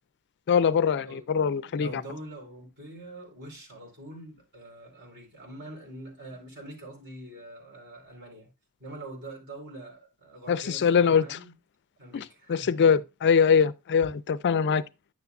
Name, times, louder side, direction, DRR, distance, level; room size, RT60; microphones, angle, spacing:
voice 1, 0.5-2.0 10.5-11.4 12.1-14.8, left 6 dB, 50° left, 0.4 m, -23 dB
voice 2, 1.6-8.5 8.8-11.6 12.0-12.9, right 1 dB, 50° right, 4.0 m, -44 dB
9.7 x 6.9 x 2.4 m
head